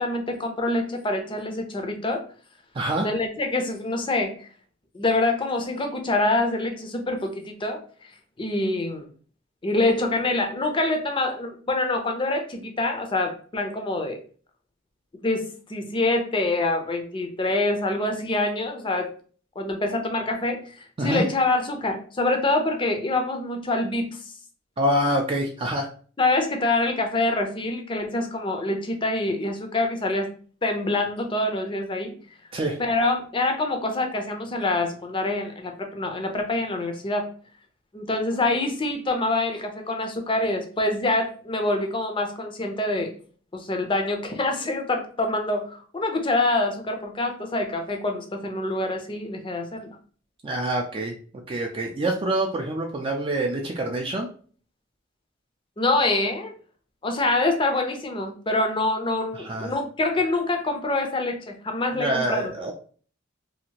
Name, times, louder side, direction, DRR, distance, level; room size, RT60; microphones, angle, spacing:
voice 1, 0.0-2.2 3.0-4.5 4.9-7.8 8.4-9.1 9.6-14.2 15.2-19.1 19.6-24.2 26.2-30.3 30.6-32.1 32.8-37.3 37.9-43.1 43.5-49.9 55.8-56.5 57.0-62.5, left 2 dB, 25° left, 4 dB, 0.5 m, -25 dB
voice 2, 2.7-3.1 21.0-21.3 24.8-25.9 32.5-32.8 50.4-51.2 51.5-54.3 59.3-59.7 61.9-62.7, right 1 dB, 25° right, 1 dB, 0.3 m, -26 dB
2.8 x 2.5 x 2.8 m, 0.43 s
head